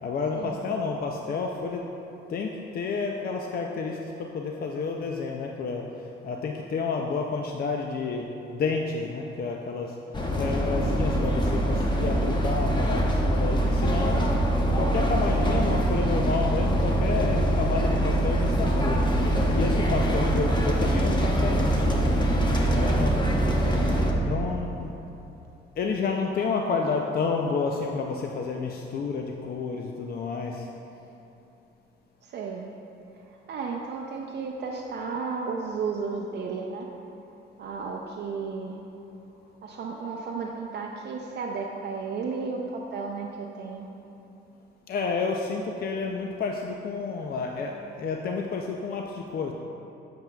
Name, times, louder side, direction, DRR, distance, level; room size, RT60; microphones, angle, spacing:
voice 1, 0.0-1.9 2.3-10.0 10.3-14.3 14.8-23.2 24.2-24.9 25.8-30.7 44.9-49.5, left 4 dB, 50° left, 1 dB, 0.5 m, -30 dB
sound 1, 10.1-24.1, right 1 dB, 20° left, 0.8 m, -23 dB
voice 2, 32.2-32.7 33.3-36.9 37.6-38.8 39.6-43.9, right 4 dB, 60° right, -1 dB, 0.5 m, -33 dB
7.7 x 7.4 x 2.3 m, 2.9 s
cardioid pair, 90°, 20 cm